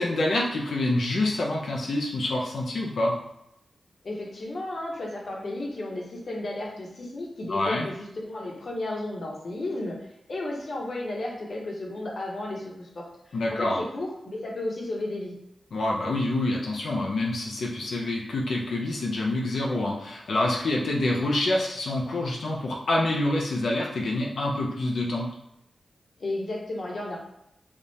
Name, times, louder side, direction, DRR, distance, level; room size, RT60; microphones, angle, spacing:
voice 1, 0.0-3.1 7.5-7.9 13.3-13.8 15.7-25.3, left 2 dB, 80° left, -2 dB, 0.6 m, -26 dB
voice 2, 4.0-15.3 26.2-27.2, left 2 dB, 60° left, -2 dB, 1.1 m, -33 dB
3.6 x 2.4 x 4.1 m, 0.81 s
cardioid pair, 70°, 0 cm